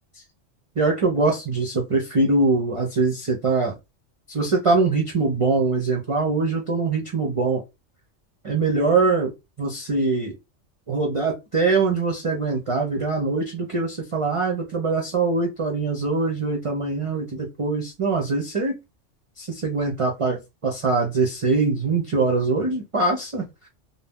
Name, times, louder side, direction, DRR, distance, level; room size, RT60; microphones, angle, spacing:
voice 1, 0.8-3.7 4.3-7.6 8.4-9.3 9.6-10.3 10.9-18.8 19.4-23.7, right 3 dB, 45° right, 0 dB, 0.4 m, -23 dB
2.6 x 2.0 x 3.4 m, 0.24 s
omnidirectional pair, 1.3 m